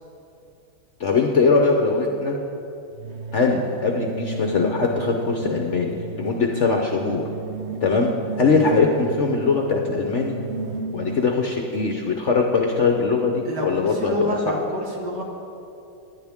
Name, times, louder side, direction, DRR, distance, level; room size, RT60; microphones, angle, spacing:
voice 1, 1.0-2.4 3.3-7.3 7.8-8.1 8.4-10.4 10.9-14.1 14.5-14.6, left 4 dB, 50° left, 2 dB, 0.9 m, -21 dB
sound 1, 2.9-11.5, right 3 dB, 85° right, 0.6 m, -34 dB
voice 2, 13.4-15.2, equal, 65° right, -1 dB, 2.3 m, -28 dB
18.5 x 10.5 x 3.6 m, 2.8 s
omnidirectional pair, 2.0 m